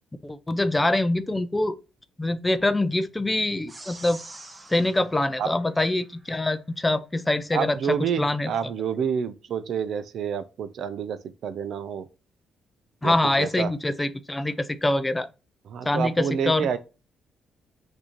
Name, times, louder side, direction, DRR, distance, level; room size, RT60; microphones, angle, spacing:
voice 1, 0.2-1.7 2.2-4.2 4.7-8.5 13.0-15.3 15.8-16.8, left 2 dB, 15° left, 0.5 m, -24 dB
sound 1, 3.7-6.3, right 2 dB, 20° right, 1.0 m, -46 dB
voice 2, 7.5-12.1 13.0-13.7 15.7-16.8, right 7 dB, 70° right, 0.5 m, -28 dB
6.0 x 2.7 x 3.0 m
cardioid pair, 90°, 0 cm